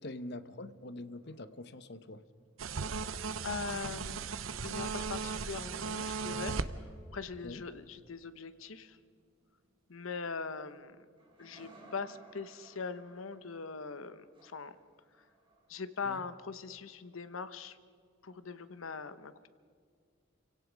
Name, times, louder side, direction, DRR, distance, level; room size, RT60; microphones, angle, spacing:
voice 1, 0.0-2.2 7.4-7.6 16.0-16.2, left 2 dB, 55° left, 12 dB, 0.9 m, -44 dB
sound 1, 0.7-2.0 4.8-10.6 11.2-16.2 18.6-18.7, right 1 dB, 25° right, 4.2 m, -62 dB
sound 2, 2.6-6.7, right 5 dB, 85° right, 0.9 m, -37 dB
voice 2, 3.4-4.2 4.6-6.5 7.1-9.0 9.9-11.0 11.4-14.7 15.7-17.8 18.2-19.5, left 5 dB, 85° left, 13 dB, 1.0 m, -41 dB
29.0 x 17.0 x 5.2 m, 2.1 s
head